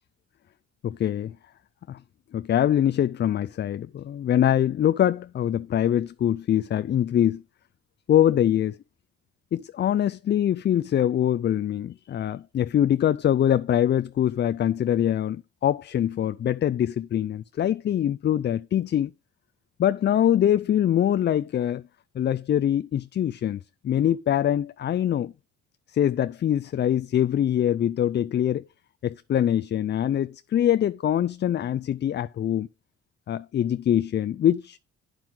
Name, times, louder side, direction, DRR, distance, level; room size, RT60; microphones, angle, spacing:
voice 1, 0.8-1.3 1.9-2.0 2.3-7.4 8.1-8.8 9.5-19.1 19.8-21.8 22.2-23.6 23.8-25.3 25.9-28.6 29.0-32.7 33.3-34.8, left 10 dB, 35° left, 0.4 m, -23 dB
9.1 x 7.6 x 3.8 m
cardioid pair, 90°, 30 cm